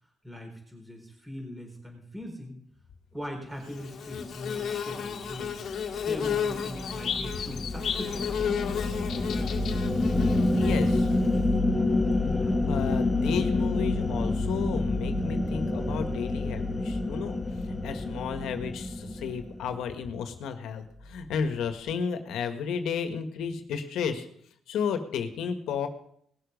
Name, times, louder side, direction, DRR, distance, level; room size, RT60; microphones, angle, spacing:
voice 1, 0.2-2.5 3.1-5.5 5.9-8.5, equal, 10° right, 1 dB, 4.5 m, -40 dB
Bird / Buzz, 3.7-11.4, left 7 dB, 60° left, 1.6 m, -33 dB
sound 1, 5.3-19.8, left 2 dB, 15° left, 2.5 m, -28 dB
voice 2, 10.5-11.1 12.6-17.4 17.7-24.3 24.7-25.9, left 6 dB, 80° left, 8 dB, 1.6 m, -32 dB
19.5 x 7.1 x 5.4 m, 0.67 s
cardioid pair, 90°, 0 cm